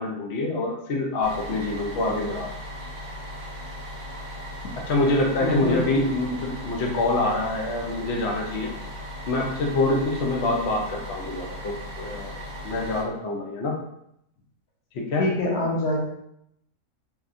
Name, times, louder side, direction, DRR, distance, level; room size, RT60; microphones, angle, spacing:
voice 1, 0.0-2.5 4.9-8.7 9.3-13.8 14.9-15.3, left 2 dB, 55° left, 0 dB, 0.8 m, -26 dB
Bus, 1.2-13.0, equal, 35° right, 1.2 m, -37 dB
voice 2, 5.4-5.8 15.2-16.0, left 2 dB, 90° left, -2 dB, 1.4 m, -24 dB
3.9 x 2.9 x 2.6 m, 0.77 s
omnidirectional pair, 1.7 m